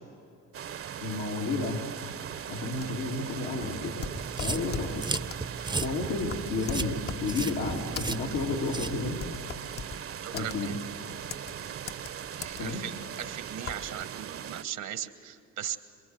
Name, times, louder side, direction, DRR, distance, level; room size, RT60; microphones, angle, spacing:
sound 1, 0.5-14.6, right 9 dB, 50° right, 0.7 m, -40 dB
voice 1, 1.0-1.8 2.5-5.1 5.8-9.2 10.3-10.8 12.6-12.8, left 3 dB, 85° left, -3 dB, 2.8 m, -32 dB
sound 2, 2.7-14.0, left 5 dB, 35° left, 0.7 m, -41 dB
sound 3, 4.2-9.3, right 3 dB, 15° right, 0.6 m, -36 dB
voice 2, 10.2-10.7 12.4-15.8, right 10 dB, 85° right, 10 dB, 1.3 m, -38 dB
27.0 x 22.0 x 7.8 m, 2.7 s
cardioid pair, 90°, 30 cm